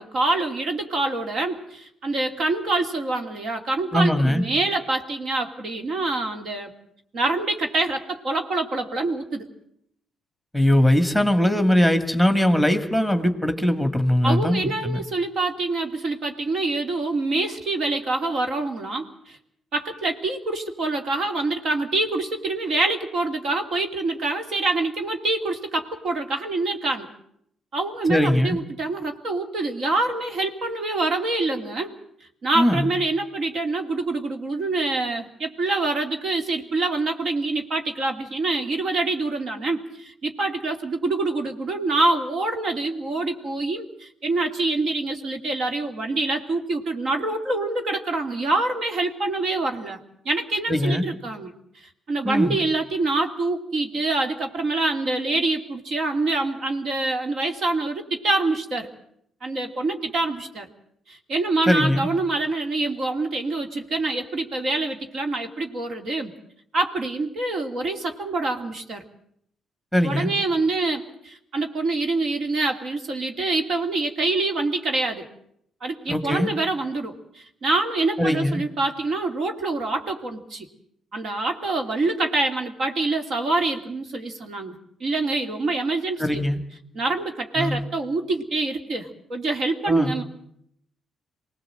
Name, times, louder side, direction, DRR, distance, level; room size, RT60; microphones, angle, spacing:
voice 1, 0.0-6.7 7.1-9.5 14.2-19.4 19.7-27.1 27.7-32.0 32.4-51.5 52.1-58.9 59.4-60.7 61.1-66.3 66.7-69.0 70.0-75.3 75.8-80.7 81.1-86.4 86.9-90.2, right 2 dB, 60° right, 5 dB, 2.8 m, -26 dB
voice 2, 3.9-4.4 10.5-15.0 28.1-28.6 32.6-32.9 50.7-51.1 52.2-52.6 61.7-62.1 69.9-70.3 76.1-76.5 78.2-78.6 86.2-86.6 87.6-87.8 89.9-90.2, left 1 dB, ahead, 8 dB, 1.9 m, -21 dB
24.5 x 19.0 x 7.8 m, 0.73 s
cardioid pair, 90°, 0 cm